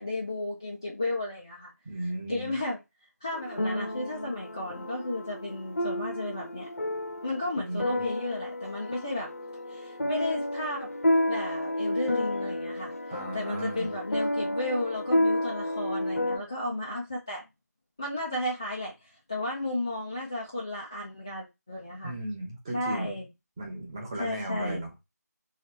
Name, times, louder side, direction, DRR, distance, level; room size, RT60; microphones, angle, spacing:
voice 1, 0.0-1.7 2.0-2.8 3.2-6.7 7.2-9.3 9.7-10.9 11.3-12.9 13.3-17.4 18.0-22.1 22.7-23.3 24.2-24.9, left 1 dB, 15° left, 0.3 m, -33 dB
voice 2, 1.8-2.5 7.6-8.0 13.1-13.9 22.0-23.1 23.6-24.9, right 1 dB, 15° right, 0.8 m, -35 dB
sound 1, 3.3-16.4, left 1 dB, 55° left, 0.8 m, -31 dB
3.1 x 3.0 x 4.3 m
figure-of-eight pair, 165°, 9 cm